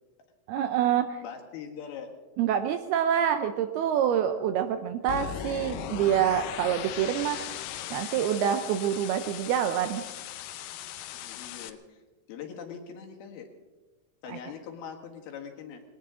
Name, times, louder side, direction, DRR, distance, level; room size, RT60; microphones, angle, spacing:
voice 1, 0.5-1.2 2.4-7.5 7.9-10.0 14.3-14.4, right 9 dB, 80° right, 8 dB, 2.4 m, -26 dB
voice 2, 1.2-2.1 11.1-12.0 12.3-13.5 14.2-15.8, left 7 dB, 65° left, 2 dB, 3.3 m, -42 dB
sound 1, 5.1-11.7, left 10 dB, 85° left, 2.0 m, -38 dB
21.0 x 18.5 x 3.7 m, 1.2 s
omnidirectional pair, 5.1 m